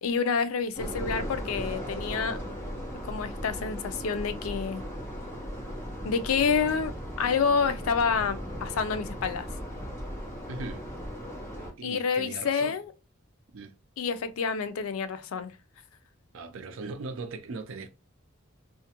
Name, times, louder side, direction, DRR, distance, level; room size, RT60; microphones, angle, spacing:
voice 1, 0.0-2.4 3.0-4.8 6.0-9.5 11.8-12.9 14.0-15.5, left 5 dB, 90° left, 0.4 m, -28 dB
sound 1, 0.7-11.7, equal, 15° left, 0.9 m, -37 dB
Wind, 5.7-10.4, equal, 5° right, 0.3 m, -45 dB
voice 2, 10.5-10.8 11.6-12.8 13.5-13.7 16.3-17.9, right 3 dB, 75° right, 0.5 m, -39 dB
2.4 x 2.1 x 2.8 m
head